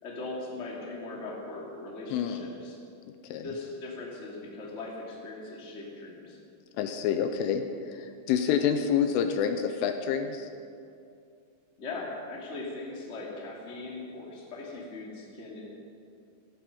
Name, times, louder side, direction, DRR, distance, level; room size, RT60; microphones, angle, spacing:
voice 1, 0.0-2.8 3.4-6.4 11.8-15.7, left 2 dB, 25° left, -4 dB, 1.7 m, -39 dB
voice 2, 2.1-2.5 3.3-3.5 6.7-10.5, left 8 dB, 80° left, 7 dB, 3.1 m, -28 dB
16.0 x 15.0 x 5.5 m, 2.5 s
omnidirectional pair, 5.9 m